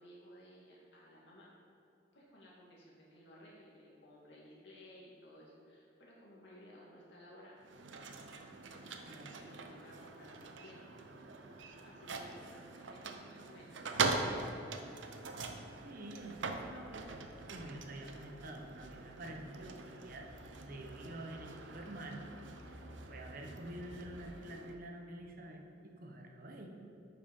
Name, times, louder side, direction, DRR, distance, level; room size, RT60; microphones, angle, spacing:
voice 1, 0.0-1.5 2.1-7.7 8.7-10.8 11.5-15.0, equal, 70° left, -5 dB, 2.3 m, -57 dB
sound 1, 7.6-24.7, right 4 dB, 80° right, 0.7 m, -43 dB
sound 2, 8.2-24.2, equal, 35° left, 1.4 m, -60 dB
voice 2, 8.9-9.3 15.8-17.1 17.5-20.3 20.6-22.3 22.5-22.8 23.1-26.7, right 1 dB, 50° right, 2 dB, 1.0 m, -48 dB
8.5 x 5.8 x 5.4 m, 2.6 s
head